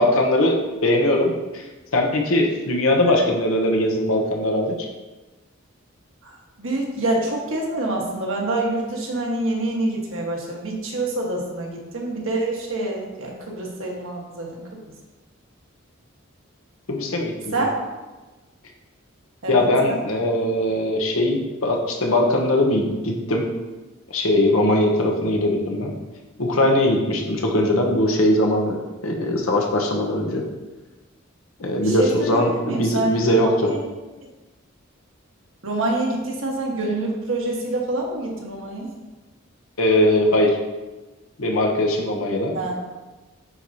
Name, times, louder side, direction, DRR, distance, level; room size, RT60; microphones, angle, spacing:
voice 1, 0.0-1.6 1.9-4.9 16.9-17.6 19.5-23.5 24.1-25.9 26.4-30.4 31.6-33.7 39.8-40.6 41.4-42.6, left 1 dB, 85° left, 1 dB, 1.0 m, -20 dB
voice 2, 6.6-14.6 17.5-17.8 19.4-19.6 31.8-33.2 33.6-33.8 35.6-38.9 42.5-42.8, right 2 dB, 70° right, -1 dB, 1.4 m, -26 dB
9.1 x 4.6 x 2.8 m, 1.2 s
head